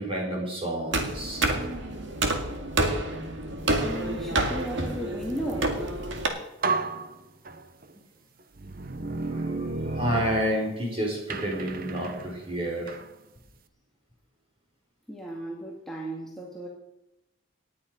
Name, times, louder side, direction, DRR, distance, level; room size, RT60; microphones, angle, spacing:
voice 1, 0.0-1.4 9.6-12.9, equal, 25° right, -1 dB, 4.9 m, -30 dB
sound 1, 0.9-6.3, right 2 dB, 60° right, 2.1 m, -28 dB
voice 2, 3.8-5.8 15.1-16.7, right 1 dB, ahead, -4 dB, 1.9 m, -35 dB
sound 2, 6.1-6.2 6.6-7.9 8.5-10.9 11.3-13.1, right 3 dB, 45° right, 0.9 m, -33 dB
18.5 x 10.5 x 5.2 m, 0.88 s
head